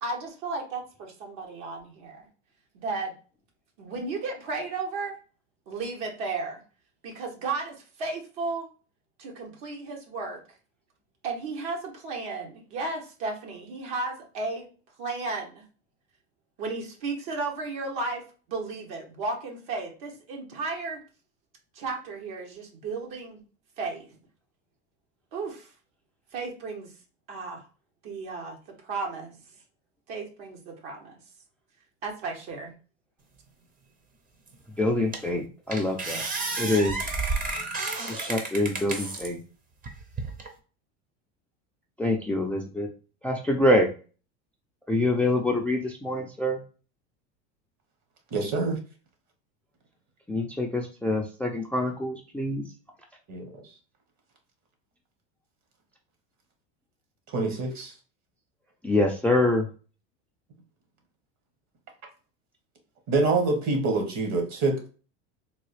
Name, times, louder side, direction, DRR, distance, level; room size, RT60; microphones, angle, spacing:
voice 1, 0.0-2.3 2.7-3.1 3.8-5.1 5.7-6.6 7.0-8.7 9.2-10.4 11.2-14.7 15.0-15.6 16.6-18.2 18.5-21.0 21.7-23.4 23.8-24.2 25.3-25.7 26.3-26.9 27.3-27.6 28.0-28.6 28.8-29.4 30.1-31.2 32.0-32.7, right 3 dB, 70° right, 1.4 m, -34 dB
sound 1, 34.5-34.6 35.1-35.4 35.7-39.3 39.8-40.5, right 3 dB, 25° right, 0.7 m, -31 dB
voice 2, 34.8-36.2 36.6-37.0 38.1-39.4 42.0-42.9 43.2-43.9 44.9-46.6 50.3-52.6 58.8-59.6, left 1 dB, 5° left, 0.3 m, -25 dB
voice 3, 48.3-48.8 53.3-53.6 57.3-57.9 63.1-64.9, right 3 dB, 50° right, 1.4 m, -26 dB
3.7 x 2.3 x 3.2 m
supercardioid pair, 110°, 35 cm